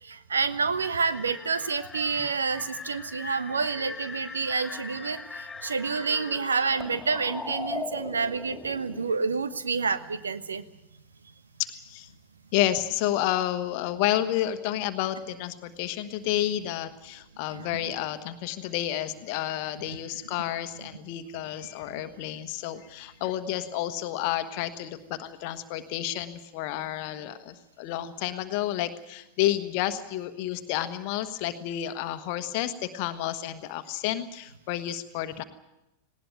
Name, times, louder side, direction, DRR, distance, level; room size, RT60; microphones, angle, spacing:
voice 1, 0.0-10.6 17.5-17.7, right 5 dB, 75° right, 13 dB, 1.1 m, -28 dB
sound 1, 0.8-9.1, left 4 dB, 10° left, 3.0 m, -40 dB
voice 2, 11.6-12.1 12.5-35.4, left 13 dB, 45° left, 10 dB, 1.2 m, -30 dB
19.5 x 18.0 x 9.2 m, 0.92 s
figure-of-eight pair, 90°, 0 cm